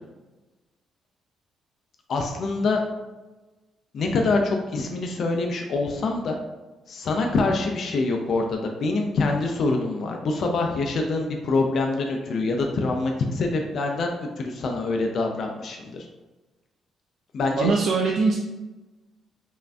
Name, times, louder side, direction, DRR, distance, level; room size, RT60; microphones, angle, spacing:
voice 1, 2.1-2.8 3.9-6.4 6.9-16.1 17.3-17.7, left 3 dB, 45° left, 2 dB, 0.4 m, -25 dB
voice 2, 17.6-18.4, right 4 dB, 55° right, 0 dB, 0.4 m, -21 dB
5.4 x 2.5 x 2.3 m, 1.1 s
cardioid pair, 170°, 0 cm